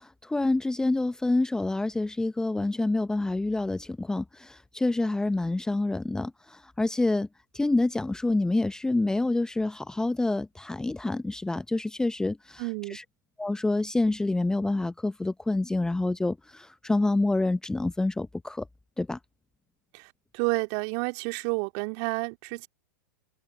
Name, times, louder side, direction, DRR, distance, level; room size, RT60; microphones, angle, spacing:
voice 1, 0.0-7.3 7.5-12.6 12.9-13.0 13.4-18.6 19.0-19.2, left 2 dB, 5° left, 0.8 m, -27 dB
voice 2, 12.6-13.0 19.9-22.7, right 33 dB, 45° right, 2.2 m, -30 dB
figure-of-eight pair, 100°, 10 cm